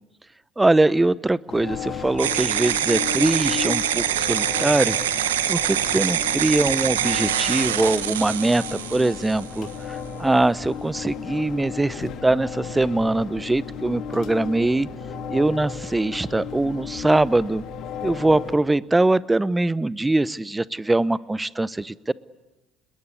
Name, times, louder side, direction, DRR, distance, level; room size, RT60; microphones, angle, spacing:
voice 1, 0.6-5.0 5.5-14.9 15.3-17.6 18.0-22.1, right 2 dB, 15° right, 19 dB, 0.8 m, -22 dB
sound 1, 1.5-18.6, left 7 dB, 55° left, 2.6 m, -35 dB
sound 2, 2.2-9.7, right 10 dB, 85° right, 1.4 m, -25 dB
27.5 x 21.0 x 8.5 m, 1.1 s
hypercardioid pair, 60°, 0 cm